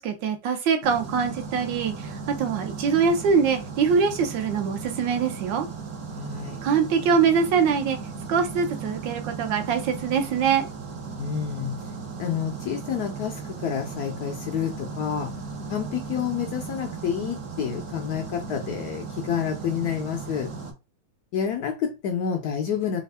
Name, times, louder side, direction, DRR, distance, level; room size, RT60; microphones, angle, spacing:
voice 1, 0.0-5.7 6.6-8.0 8.3-10.7, right 6 dB, 75° right, 1.4 m, -23 dB
sound 1, 0.8-20.7, right 5 dB, 60° right, 1.2 m, -36 dB
voice 2, 6.1-6.7 11.2-11.8 12.2-15.4 15.7-20.5 21.3-23.0, left 8 dB, 75° left, 0.9 m, -29 dB
3.5 x 2.4 x 3.3 m
omnidirectional pair, 2.0 m